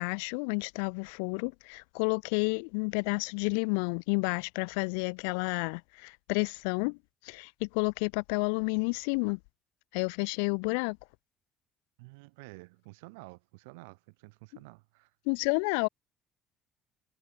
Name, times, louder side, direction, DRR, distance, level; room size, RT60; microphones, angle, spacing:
voice 1, 0.0-7.0 7.2-9.4 9.9-11.0 15.3-15.9, left 38 dB, 75° left, 0.9 m, -30 dB
voice 2, 12.0-15.1, right 28 dB, 75° right, 2.7 m, -50 dB
hypercardioid pair, 55°, 0 cm